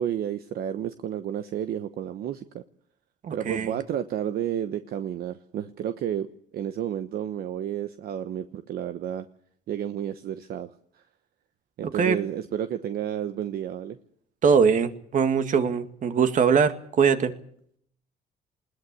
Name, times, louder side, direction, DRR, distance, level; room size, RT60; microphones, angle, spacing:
voice 1, 0.0-2.6 3.3-6.3 6.5-9.2 9.7-10.7 11.8-14.0, right 10 dB, 65° right, 1.1 m, -31 dB
voice 2, 3.2-3.8 11.8-12.2 14.4-17.3, right 6 dB, 50° right, 2.0 m, -22 dB
20.5 x 18.0 x 8.4 m
cardioid pair, 110°, 17 cm